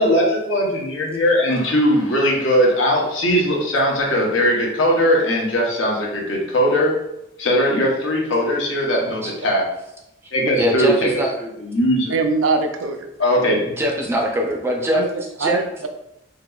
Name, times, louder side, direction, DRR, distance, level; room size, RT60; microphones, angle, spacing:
voice 1, 0.0-6.9 7.4-9.6 10.3-11.1 11.4-12.1 13.2-13.7, equal, 80° left, -2 dB, 0.9 m, -19 dB
voice 2, 10.6-11.3 13.8-15.0 15.4-15.6, equal, 10° right, 0 dB, 0.4 m, -22 dB
voice 3, 12.1-13.1 14.9-15.1 15.4-15.9, right 3 dB, 85° right, 6 dB, 0.4 m, -22 dB
3.7 x 2.8 x 2.3 m, 0.84 s
head